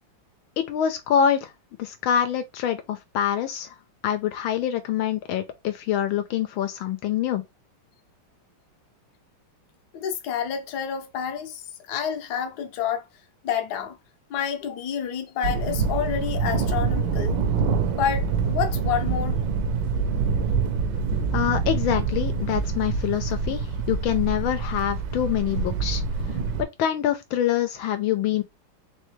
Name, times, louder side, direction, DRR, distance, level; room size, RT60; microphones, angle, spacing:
voice 1, 0.6-1.5 1.8-3.7 4.0-7.4 21.3-26.0 26.8-28.4, left 10 dB, 80° left, 1.5 m, -25 dB
voice 2, 9.9-11.6 11.9-13.0 13.4-14.0 14.3-17.4 18.0-19.4, left 8 dB, 60° left, 1.2 m, -28 dB
Thunder, 15.4-26.6, right 5 dB, 75° right, 1.5 m, -26 dB
4.1 x 3.2 x 3.1 m
omnidirectional pair, 2.3 m